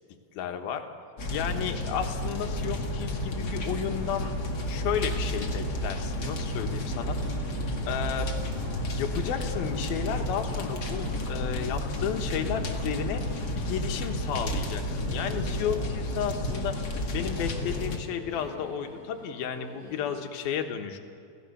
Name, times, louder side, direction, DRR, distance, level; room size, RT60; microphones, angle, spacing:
voice 1, 0.3-0.9 1.3-4.3 4.7-7.2 7.9-8.3 8.9-13.2 13.5-16.8 17.1-21.0, left 8 dB, 90° left, 6 dB, 3.3 m, -33 dB
sound 1, 1.2-18.0, left 1 dB, 35° left, 1.9 m, -31 dB
sound 2, 6.7-17.7, right 2 dB, 45° right, 2.0 m, -43 dB
sound 3, 14.6-20.2, equal, 20° right, 6.1 m, -46 dB
27.0 x 17.0 x 6.9 m, 2.6 s
omnidirectional pair, 4.2 m